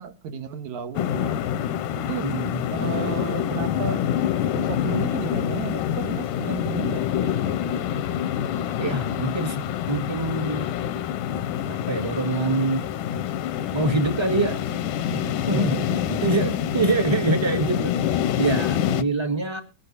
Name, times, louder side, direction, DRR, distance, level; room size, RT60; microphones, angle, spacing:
voice 1, 0.0-1.3 2.0-2.3 2.7-4.1 4.5-7.6 15.1-16.2, right 6 dB, 70° right, 2.6 m, -33 dB
sound 1, 0.9-19.0, left 10 dB, 85° left, 2.4 m, -26 dB
voice 2, 2.2-2.6 8.8-10.7 11.7-12.8 13.7-14.6 15.2-15.9 16.2-18.0 18.4-19.6, right 2 dB, 15° right, 0.9 m, -25 dB
20.0 x 11.5 x 2.7 m
omnidirectional pair, 3.7 m